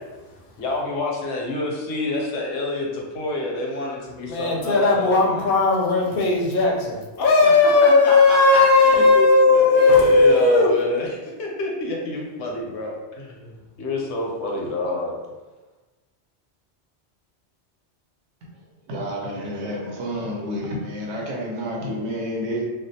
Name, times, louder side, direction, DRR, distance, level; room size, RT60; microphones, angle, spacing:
voice 1, 0.6-5.5 7.4-7.5 7.8-9.3 9.5-11.1 11.4-15.2, left 2 dB, 90° left, -2 dB, 0.9 m, -28 dB
voice 2, 4.2-10.7, left 3 dB, 60° left, -2 dB, 0.7 m, -16 dB
voice 3, 18.9-22.6, equal, 90° right, -2 dB, 1.0 m, -29 dB
2.4 x 2.2 x 2.7 m, 1.2 s
omnidirectional pair, 1.1 m